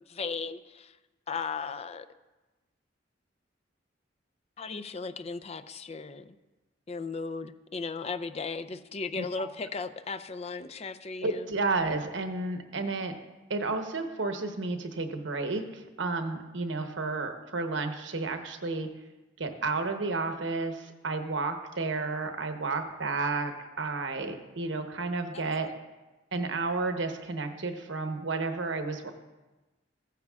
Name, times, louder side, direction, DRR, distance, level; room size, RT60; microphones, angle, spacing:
voice 1, 0.0-1.0 1.3-2.1 4.6-6.4 6.9-11.5 25.3-25.5, left 4 dB, 35° left, 11 dB, 0.5 m, -36 dB
voice 2, 11.2-13.1 13.5-18.9 19.4-25.7 26.3-29.1, right 3 dB, 85° right, 6 dB, 1.0 m, -32 dB
15.5 x 9.2 x 2.4 m, 1.1 s
head